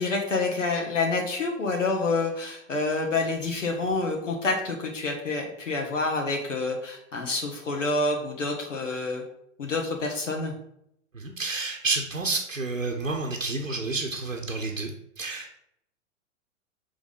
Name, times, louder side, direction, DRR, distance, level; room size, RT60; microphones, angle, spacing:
voice 1, 0.0-9.2 9.6-10.5, left 3 dB, 70° left, 1 dB, 1.3 m, -28 dB
voice 2, 11.1-14.9 15.2-15.6, right 3 dB, 90° right, 1 dB, 0.9 m, -30 dB
6.4 x 3.5 x 5.3 m, 0.75 s
figure-of-eight pair, 100°, 38 cm